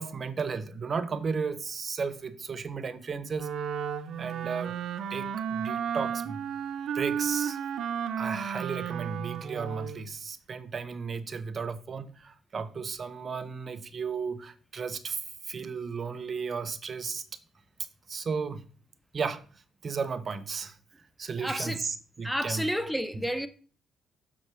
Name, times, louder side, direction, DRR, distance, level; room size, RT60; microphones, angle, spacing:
voice 1, 0.0-3.5 4.2-4.8 5.1-6.4 6.9-7.6 8.2-17.2 18.1-18.6 19.1-19.4 19.8-20.7 21.2-22.7 23.1-23.3, right 5 dB, 45° right, 0.8 m, -34 dB
Wind instrument woodwind instrument, 3.4-10.0, right 8 dB, 70° right, 0.6 m, -33 dB
voice 2, 21.4-21.8 22.2-23.5, equal, ahead, 0.6 m, -30 dB
6.7 x 3.9 x 6.1 m
cardioid pair, 90°, 0 cm